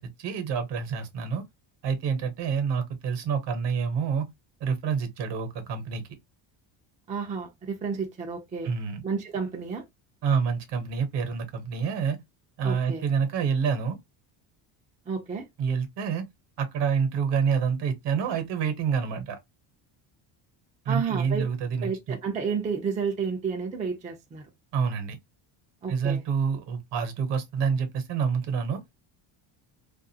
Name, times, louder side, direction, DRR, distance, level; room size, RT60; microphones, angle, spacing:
voice 1, 0.0-1.4 1.8-4.3 4.6-6.0 8.6-9.0 10.2-12.2 12.6-14.0 15.6-16.3 16.6-19.4 20.8-22.2 24.7-25.2 25.9-28.8, right 6 dB, 60° right, 1.0 m, -27 dB
voice 2, 7.1-8.7 9.0-9.8 12.6-13.0 15.1-15.4 20.9-21.5 21.8-24.5 25.8-26.2, right 5 dB, 15° right, 0.4 m, -31 dB
2.5 x 2.4 x 2.7 m
cardioid pair, 140°, 46 cm